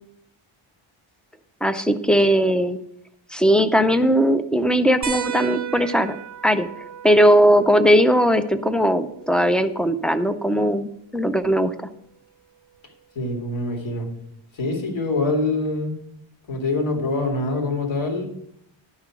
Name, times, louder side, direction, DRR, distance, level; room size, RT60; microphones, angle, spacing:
voice 1, 1.6-2.8 3.3-6.2 6.4-6.7 7.0-11.7, equal, ahead, 10 dB, 0.4 m, -18 dB
sound 1, 5.0-10.1 11.6-11.7 13.4-13.5, right 8 dB, 35° right, 0.6 m, -35 dB
voice 2, 13.2-14.1 14.5-16.0 16.5-18.3, left 2 dB, 65° left, 1 dB, 2.4 m, -24 dB
11.5 x 5.7 x 5.9 m, 0.75 s
wide cardioid pair, 170°, 49 cm